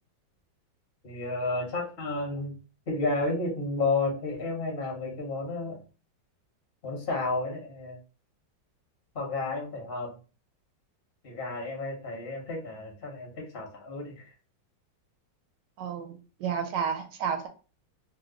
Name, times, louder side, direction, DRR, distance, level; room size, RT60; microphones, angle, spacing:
voice 1, 1.0-2.5 2.9-5.8 6.8-8.0 9.1-10.1 11.2-14.3, left 3 dB, 45° left, 0 dB, 0.7 m, -31 dB
voice 2, 15.8-17.5, right 7 dB, 75° right, 5 dB, 1.2 m, -31 dB
3.1 x 2.1 x 3.6 m, 0.35 s
omnidirectional pair, 2.0 m